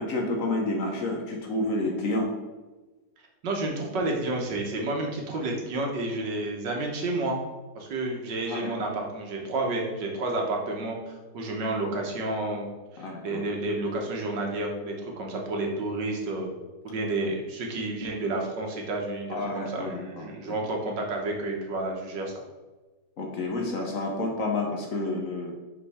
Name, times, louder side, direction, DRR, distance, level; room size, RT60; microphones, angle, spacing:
voice 1, 0.0-2.3 8.5-8.9 13.0-13.4 19.3-20.6 23.2-25.5, left 2 dB, 55° left, 1 dB, 1.2 m, -30 dB
voice 2, 3.4-7.4 7.7-12.7 12.9-16.5 16.8-22.3, right 2 dB, 75° right, 1 dB, 1.7 m, -30 dB
5.4 x 5.1 x 4.2 m, 1.2 s
omnidirectional pair, 1.9 m